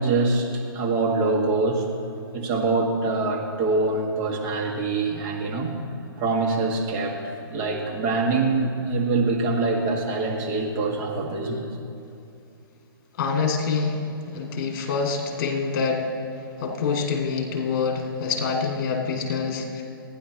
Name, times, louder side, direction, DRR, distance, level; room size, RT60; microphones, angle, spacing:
voice 1, 0.0-1.9 2.3-5.8 6.2-11.7, right 3 dB, 35° right, 0 dB, 2.0 m, -24 dB
voice 2, 13.2-14.0 14.3-16.1 16.6-19.8, left 5 dB, 50° left, 1 dB, 2.5 m, -26 dB
29.5 x 9.9 x 3.1 m, 2.7 s
hypercardioid pair, 135°, 12 cm